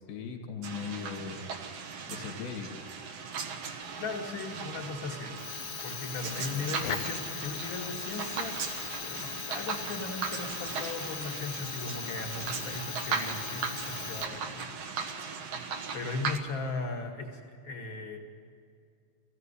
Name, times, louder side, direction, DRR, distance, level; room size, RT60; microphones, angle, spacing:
voice 1, 0.1-1.5 2.1-2.9 4.0-4.5 6.3-6.7, left 6 dB, 70° left, 4 dB, 4.1 m, -40 dB
sound 1, 0.6-16.4, right 5 dB, 75° right, 1.4 m, -38 dB
sound 2, 3.8-14.2, right 3 dB, 60° right, 2.5 m, -48 dB
voice 2, 4.0-5.3 5.8-8.6 9.0-15.0 15.9-18.2, left 3 dB, 45° left, 4 dB, 1.8 m, -38 dB
Fire, 5.3-14.7, left 13 dB, 85° left, 3.3 m, -40 dB
21.5 x 15.0 x 9.9 m, 2.3 s
omnidirectional pair, 5.1 m